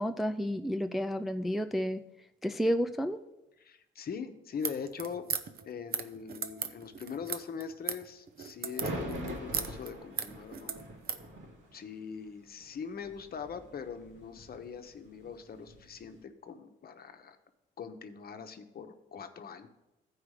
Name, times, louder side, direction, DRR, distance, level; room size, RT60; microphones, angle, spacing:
voice 1, 0.0-2.0 2.4-3.2, equal, ahead, 7 dB, 0.4 m, -31 dB
voice 2, 3.6-5.3 5.6-10.7 11.7-17.4 17.8-19.7, left 6 dB, 50° left, 8 dB, 0.9 m, -42 dB
sound 1, 4.5-11.2, right 7 dB, 50° right, 0.7 m, -37 dB
sound 2, 8.6-16.1, right 1 dB, 80° right, 2.5 m, -43 dB
14.5 x 4.8 x 4.9 m, 0.95 s
cardioid pair, 90°, 20 cm